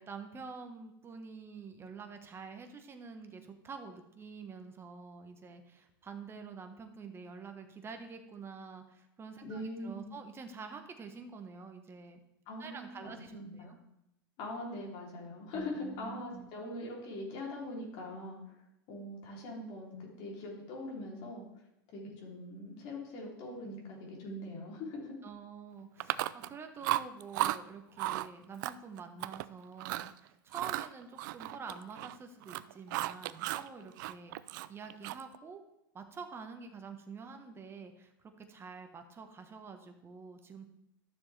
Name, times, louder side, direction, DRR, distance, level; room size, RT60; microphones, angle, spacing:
voice 1, 0.0-12.2 12.6-13.8 15.5-16.5 25.2-34.4 34.7-35.6 35.9-38.1 38.4-40.7, right 5 dB, 20° right, 6 dB, 1.3 m, -47 dB
voice 2, 9.5-10.2 12.5-13.8 14.4-18.4 18.9-21.4 21.9-25.1, left 1 dB, 50° left, -2 dB, 3.3 m, -42 dB
Chewing mastication, 26.0-26.6 26.8-27.6 28.0-28.3 28.6-29.5 29.8-30.1 30.5-32.2 32.4-33.7 34.0-35.4, right 15 dB, 60° right, 0.4 m, -35 dB
12.5 x 6.9 x 3.4 m, 0.85 s
hypercardioid pair, 110°, 12 cm